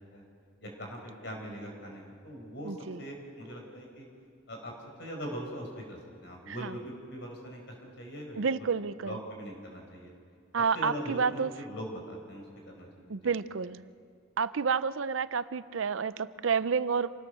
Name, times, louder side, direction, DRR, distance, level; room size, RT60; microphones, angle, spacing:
voice 1, 0.6-4.1 4.5-4.7 5.0-8.7 9.0-10.1 10.7-13.3, equal, 55° left, 1 dB, 5.2 m, -41 dB
voice 2, 2.6-3.0 6.5-6.7 8.4-9.2 10.5-11.5 13.1-13.8 14.4-17.1, right 5 dB, 70° right, 15 dB, 0.6 m, -30 dB
27.0 x 18.0 x 6.8 m, 2.3 s
head